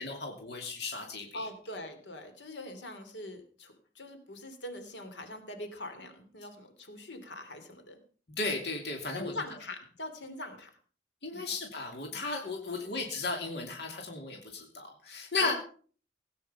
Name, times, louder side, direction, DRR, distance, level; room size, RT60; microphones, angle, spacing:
voice 1, 0.0-1.5 8.3-9.3 11.2-15.5, left 3 dB, 65° left, 2 dB, 2.7 m, -35 dB
voice 2, 1.3-8.0 9.1-10.7 11.3-11.5 12.8-13.0 15.3-15.6, left 1 dB, 85° left, 7 dB, 3.1 m, -43 dB
17.5 x 9.3 x 5.7 m, 0.42 s
head